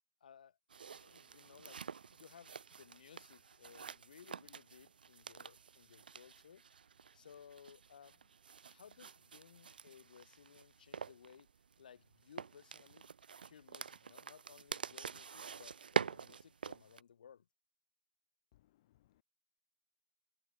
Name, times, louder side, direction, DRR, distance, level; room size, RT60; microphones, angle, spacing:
voice 1, 0.2-0.6 0.9-6.6 7.1-8.3 8.7-11.5 11.8-13.1 13.4-17.5, left 8 dB, 70° left, 1.7 m, -60 dB
sound 1, 0.7-17.0, right 6 dB, 85° right, 0.5 m, -46 dB
voice 2, 18.5-19.2, left 14 dB, 40° left, 0.5 m, -71 dB
hypercardioid pair, 145°, 5 cm